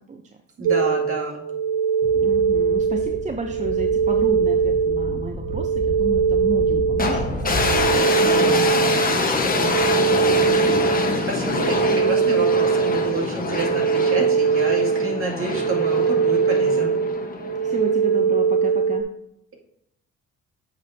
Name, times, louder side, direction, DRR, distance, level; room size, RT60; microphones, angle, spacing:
voice 1, 0.6-1.4 11.3-17.0, right 3 dB, 45° right, -2 dB, 2.2 m, -28 dB
sound 1, 0.7-19.0, right 6 dB, 75° right, 0.5 m, -21 dB
sound 2, 2.0-7.9, left 1 dB, 50° left, 1.2 m, -33 dB
voice 2, 2.2-10.5 17.6-19.1, right 4 dB, 25° right, 4 dB, 0.6 m, -32 dB
sound 3, 7.0-18.2, left 4 dB, 30° left, 1.1 m, -25 dB
8.0 x 6.7 x 2.7 m, 0.77 s
cardioid pair, 90°, 30 cm